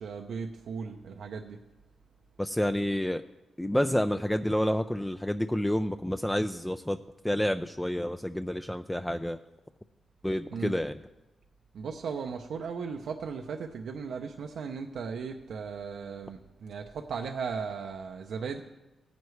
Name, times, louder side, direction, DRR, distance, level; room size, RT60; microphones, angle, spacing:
voice 1, 0.0-1.6 10.5-10.7 11.7-18.6, right 5 dB, 80° right, 4 dB, 0.6 m, -37 dB
voice 2, 2.4-3.2 3.6-7.0 7.2-9.4 10.2-11.0, equal, 10° left, 8 dB, 0.4 m, -29 dB
16.5 x 9.3 x 3.3 m, 0.99 s
cardioid pair, 65°, 0 cm